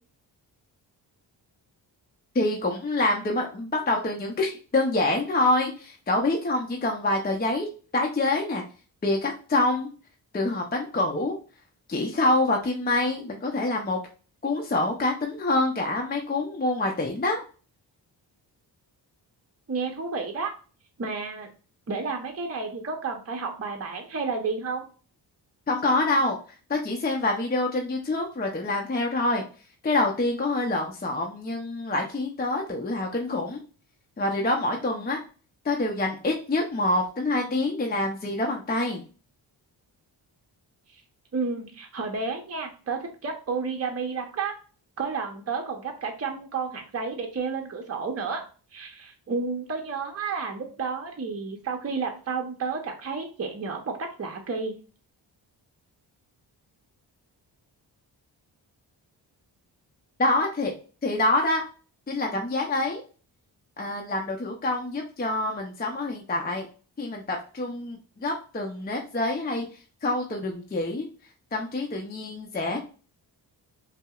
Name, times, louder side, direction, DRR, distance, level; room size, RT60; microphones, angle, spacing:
voice 1, 2.3-7.7 7.9-8.6 9.0-9.9 10.3-11.4 11.9-14.0 14.4-17.4 25.7-26.4 26.7-29.4 29.8-33.6 34.2-35.2 35.6-39.0 60.2-60.7 61.0-61.6 62.1-63.0 63.8-66.7 67.0-69.6 70.0-71.1 71.5-72.8, left 2 dB, 20° left, 1 dB, 0.6 m, -26 dB
voice 2, 19.7-20.5 21.0-21.5 21.9-24.8 40.9-41.0 41.3-44.5 45.0-48.4 48.7-54.7, right 4 dB, 30° right, 3 dB, 0.8 m, -31 dB
5.3 x 2.1 x 2.4 m, 0.38 s
cardioid pair, 50°, 46 cm